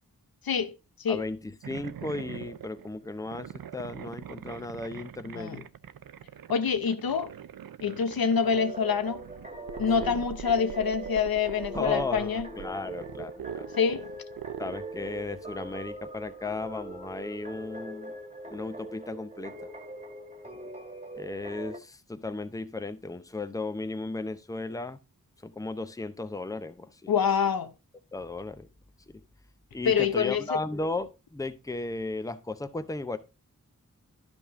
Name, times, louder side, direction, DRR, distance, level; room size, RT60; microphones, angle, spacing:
voice 1, 0.4-1.2 5.3-5.6 6.5-7.3 7.8-9.2 9.8-12.5 13.8-14.1 27.1-27.7 29.8-30.6, left 6 dB, 90° left, 0.8 m, -26 dB
voice 2, 1.1-5.7 10.0-10.2 11.7-13.7 14.6-18.1 18.5-19.7 21.1-25.0 25.4-27.1 28.1-28.7 29.7-33.2, left 2 dB, 10° left, 0.6 m, -35 dB
sound 1, 1.6-15.4, right 9 dB, 80° right, 0.6 m, -43 dB
sound 2, 8.2-21.8, right 1 dB, 20° right, 1.5 m, -41 dB
12.0 x 5.3 x 3.6 m
wide cardioid pair, 95°, 34 cm